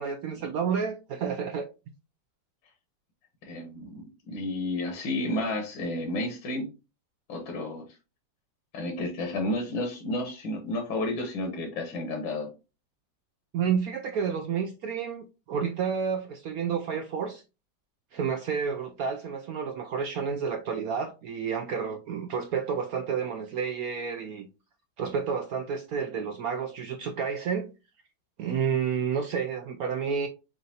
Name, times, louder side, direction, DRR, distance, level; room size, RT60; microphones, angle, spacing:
voice 1, 0.0-1.7 13.5-17.4 18.1-24.5 25.0-27.7 28.4-30.3, right 6 dB, 80° right, 0.8 m, -30 dB
voice 2, 3.4-6.7 7.3-7.8 8.7-12.5, left 1 dB, 85° left, 1.8 m, -31 dB
7.4 x 2.6 x 2.8 m
omnidirectional pair, 2.1 m